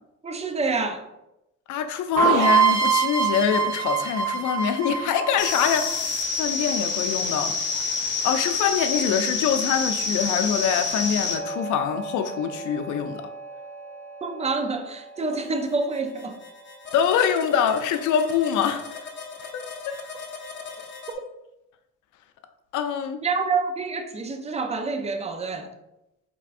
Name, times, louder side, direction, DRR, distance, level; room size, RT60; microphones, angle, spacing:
voice 1, 0.2-1.0 14.2-16.4 23.2-25.7, right 4 dB, 20° right, 6 dB, 0.5 m, -27 dB
voice 2, 1.7-7.5 8.2-13.2 16.9-18.8 19.9-20.0 20.8-20.9 22.7-23.2, left 8 dB, 80° left, 9 dB, 0.5 m, -24 dB
sound 1, 2.2-5.9, right 6 dB, 80° right, 1.3 m, -22 dB
sound 2, 5.4-21.1, left 4 dB, 40° left, 0.8 m, -30 dB
4.5 x 3.4 x 2.5 m, 0.90 s
cardioid pair, 90°, 30 cm